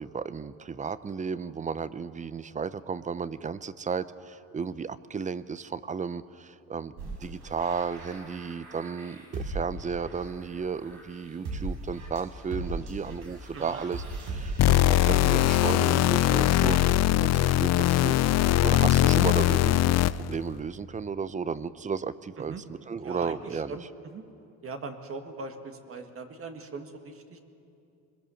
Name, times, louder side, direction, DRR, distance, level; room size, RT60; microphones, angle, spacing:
voice 1, 0.0-17.1 17.3-18.2 18.6-22.5 22.9-23.8, right 5 dB, 25° right, 16 dB, 0.6 m, -34 dB
sound 1, 7.0-14.8, right 2 dB, 80° right, 6.0 m, -38 dB
sound 2, 14.6-20.3, left 15 dB, 50° left, 0.5 m, -21 dB
voice 2, 23.0-24.2 24.6-27.4, right 3 dB, 40° right, 6 dB, 1.9 m, -40 dB
24.0 x 22.0 x 7.1 m, 2.7 s
cardioid pair, 110°, 33 cm